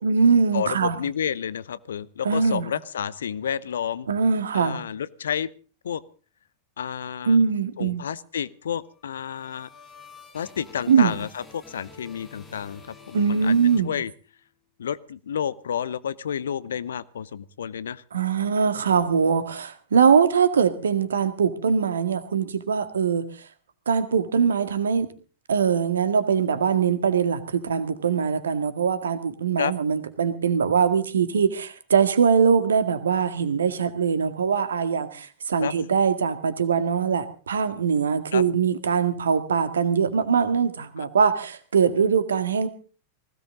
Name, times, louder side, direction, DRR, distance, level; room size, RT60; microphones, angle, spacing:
voice 1, 0.0-1.0 2.2-2.7 4.1-4.8 7.3-8.0 10.9-11.2 13.1-14.0 18.1-23.3 23.9-25.1 25.5-42.7, right 6 dB, 70° right, 11 dB, 1.9 m, -22 dB
voice 2, 0.5-4.1 4.5-5.5 5.8-6.0 6.8-7.4 7.8-9.7 10.3-12.8 13.1-13.5 13.8-14.1 14.8-18.0 29.6-29.7 35.6-35.7 38.3-38.4 41.0-41.1, left 8 dB, 65° left, 18 dB, 0.8 m, -30 dB
sound 1, 8.9-14.5, left 4 dB, 15° left, 5.0 m, -49 dB
20.0 x 17.0 x 3.9 m, 0.38 s
figure-of-eight pair, 90°, 0 cm